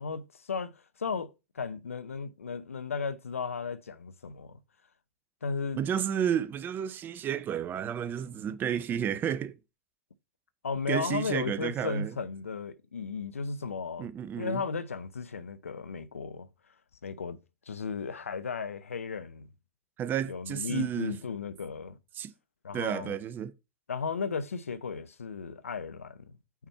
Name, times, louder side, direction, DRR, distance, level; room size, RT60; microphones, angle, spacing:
voice 1, 0.0-4.6 5.4-5.8 10.6-14.1 14.4-16.5 17.0-17.4 17.7-19.5 20.3-22.0 22.6-23.2 23.9-26.4, left 5 dB, 90° left, 0.6 m, -35 dB
voice 2, 5.8-9.5 10.9-12.1 14.0-14.6 20.0-21.2 22.2-22.3 22.7-23.5, right 9 dB, 25° right, 0.6 m, -31 dB
5.8 x 4.2 x 4.2 m
hypercardioid pair, 105°, 7 cm